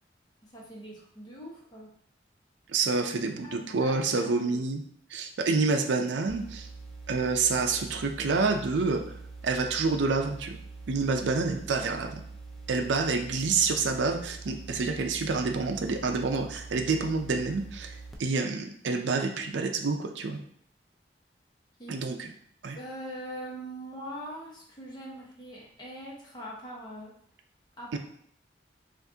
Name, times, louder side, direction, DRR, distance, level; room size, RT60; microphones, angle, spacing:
voice 1, 0.4-1.9 3.0-4.6 21.8-22.3 22.7-27.1 27.8-28.0, equal, 25° left, -3 dB, 1.0 m, -42 dB
voice 2, 2.7-4.8 5.1-6.7 7.1-9.0 9.4-10.6 10.9-12.2 12.7-20.4 21.9-22.3 22.6-22.8 27.9-28.0, right 4 dB, 85° right, 5 dB, 0.5 m, -28 dB
sound 1, 6.3-18.1, right 3 dB, ahead, 0.5 m, -44 dB
5.8 x 2.6 x 2.7 m, 0.65 s
head